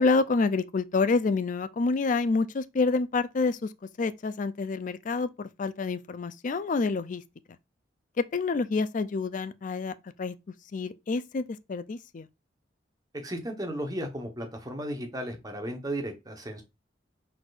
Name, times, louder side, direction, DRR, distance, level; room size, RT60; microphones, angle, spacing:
voice 1, 0.0-3.7 4.0-7.2 8.2-10.4 10.7-12.3, left 4 dB, 45° left, 0.4 m, -28 dB
voice 2, 13.1-16.6, right 1 dB, 20° right, 1.1 m, -35 dB
4.4 x 4.1 x 2.5 m
head